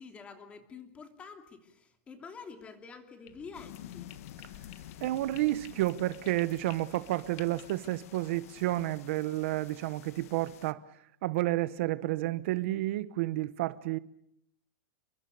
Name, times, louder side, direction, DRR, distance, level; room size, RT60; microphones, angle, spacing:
voice 1, 0.0-4.1, left 5 dB, 15° left, 3.0 m, -48 dB
sound 1, 3.3-8.8, left 13 dB, 40° left, 2.2 m, -55 dB
sound 2, 3.5-10.7, left 13 dB, 60° left, 1.5 m, -50 dB
voice 2, 5.0-10.8 11.2-14.0, right 17 dB, 50° right, 1.0 m, -30 dB
30.0 x 23.5 x 6.9 m
supercardioid pair, 170°, 9 cm